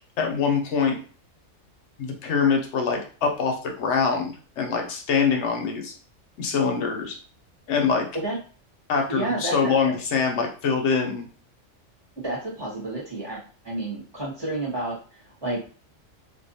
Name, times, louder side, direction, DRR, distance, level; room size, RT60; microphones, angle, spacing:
voice 1, 0.2-1.0 2.0-5.9 6.4-7.2 7.7-8.1 8.9-11.3, left 5 dB, 70° left, 3 dB, 0.9 m, -24 dB
voice 2, 9.1-9.9 12.2-15.6, right 2 dB, 25° right, -5 dB, 0.9 m, -30 dB
2.5 x 2.2 x 2.7 m, 0.40 s
omnidirectional pair, 1.3 m